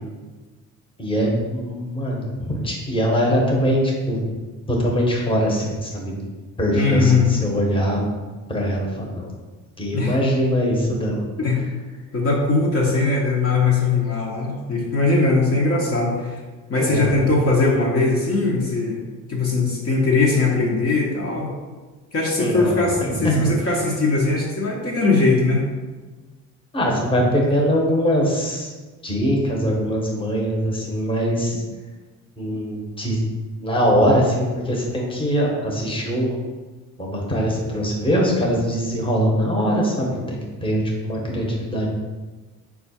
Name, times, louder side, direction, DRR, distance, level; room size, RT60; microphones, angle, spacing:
voice 1, 1.0-4.3 4.7-6.3 6.6-8.0 8.5-9.3 9.8-11.2 16.7-17.2 22.4-23.5 26.7-28.7 29.0-31.6 32.4-33.2 33.6-36.4 37.0-41.9, equal, 15° left, -2 dB, 1.0 m, -22 dB
voice 2, 6.7-7.3 9.9-10.1 11.4-11.6 12.1-16.4 16.7-19.0 19.3-21.5 22.1-25.6, left 3 dB, 40° left, -3 dB, 0.9 m, -20 dB
4.2 x 2.4 x 4.2 m, 1.3 s
supercardioid pair, 75°, 34 cm